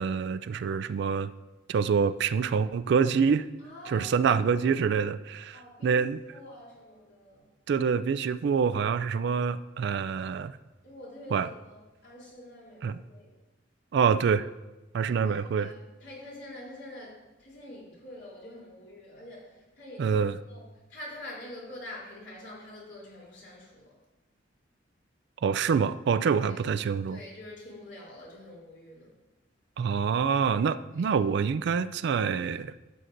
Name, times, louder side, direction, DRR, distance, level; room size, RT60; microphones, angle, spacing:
voice 1, 0.0-1.3 1.7-3.5 3.9-6.2 7.7-10.5 11.3-11.5 12.8-13.0 13.9-14.5 14.9-15.7 20.0-20.4 25.4-27.2 29.8-32.7, right 6 dB, 60° right, 13 dB, 0.3 m, -26 dB
voice 2, 3.6-4.3 4.7-4.8 5.5-6.0 6.3-7.5 10.8-13.4 15.0-20.2 20.5-24.0 26.4-26.5 27.1-29.1 31.0-31.1, left 1 dB, 65° left, -4 dB, 3.2 m, -46 dB
12.5 x 7.8 x 2.6 m, 1.1 s
head